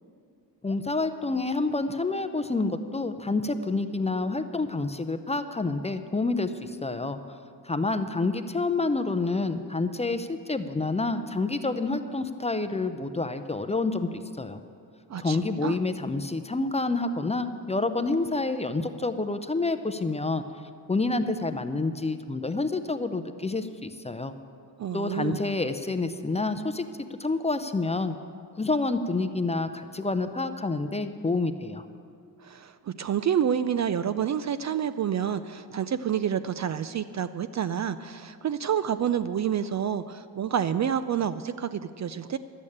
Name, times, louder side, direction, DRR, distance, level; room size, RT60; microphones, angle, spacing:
voice 1, 0.6-7.2 7.6-14.1 14.4-14.6 15.2-20.4 20.9-24.3 24.9-26.9 27.2-28.2 28.6-31.8, left 3 dB, 15° left, 9 dB, 0.6 m, -28 dB
voice 2, 15.1-15.8 24.8-25.5 32.4-42.4, right 8 dB, 40° right, 13 dB, 0.4 m, -28 dB
12.0 x 8.3 x 8.6 m, 2.4 s
cardioid pair, 100°, 42 cm